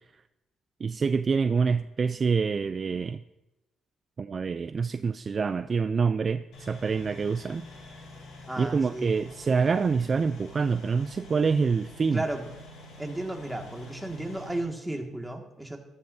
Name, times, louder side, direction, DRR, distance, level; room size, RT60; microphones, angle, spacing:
voice 1, 0.8-3.2 4.2-7.7 8.6-12.2, right 5 dB, 40° right, 11 dB, 0.3 m, -26 dB
sound 1, 6.5-14.6, left 2 dB, 85° left, 2.9 m, -47 dB
voice 2, 8.5-9.1 12.1-12.5 13.0-15.8, right 1 dB, 5° right, 2 dB, 1.9 m, -34 dB
16.0 x 12.0 x 2.7 m, 0.98 s
cardioid pair, 90°, 0 cm